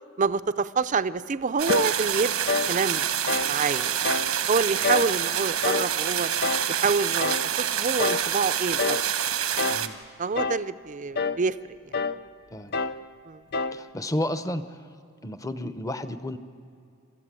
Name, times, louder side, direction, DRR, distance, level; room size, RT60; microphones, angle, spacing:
voice 1, 0.2-2.4 2.7-3.1 3.4-4.1 4.5-6.3 6.7-9.0 10.2-11.6 13.3-13.4, right 4 dB, 35° right, 13 dB, 0.5 m, -27 dB
sound 1, 1.6-9.9, right 9 dB, 90° right, 1.2 m, -27 dB
sound 2, 1.7-2.0 2.5-2.8 3.3-3.6 4.0-4.3 4.8-5.2 5.6-5.9 6.4-6.7 7.2-7.5 8.0-8.3 8.8-9.1 9.6-9.9 10.4-10.7 11.2-11.4 11.9-12.2 12.7-13.0 13.5-13.8, left 4 dB, 50° left, 0.5 m, -27 dB
voice 2, 9.7-10.0 12.5-12.8 13.7-14.8 15.2-16.4, left 1 dB, 15° left, 10 dB, 0.8 m, -32 dB
28.0 x 14.0 x 7.6 m, 2.4 s
head